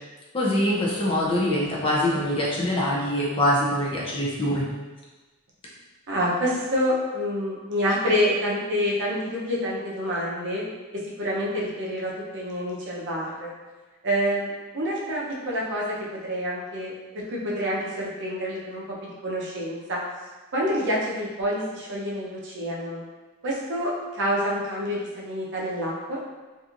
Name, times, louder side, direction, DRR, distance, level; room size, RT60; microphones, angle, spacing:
voice 1, 0.3-4.6, left 1 dB, 25° left, -5 dB, 0.5 m, -24 dB
voice 2, 6.1-10.6 11.2-13.5 14.0-15.9 16.3-18.8 19.2-20.0 20.5-23.0 23.4-26.2, equal, 55° right, -4 dB, 0.6 m, -27 dB
2.9 x 2.6 x 2.5 m, 1.2 s
head